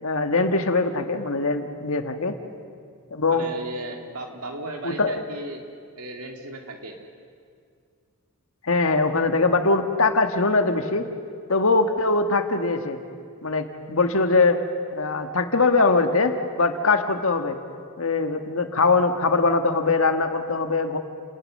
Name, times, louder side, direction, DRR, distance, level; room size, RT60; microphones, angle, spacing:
voice 1, 0.0-2.4 3.1-3.5 4.8-5.2 8.6-11.1 11.5-13.0 13.4-14.6 14.9-17.6 18.0-21.0, left 3 dB, 65° left, 6 dB, 1.6 m, -22 dB
voice 2, 3.3-5.6 6.0-7.0, right 2 dB, 80° right, 3 dB, 2.8 m, -35 dB
30.0 x 19.0 x 6.6 m, 2.2 s
head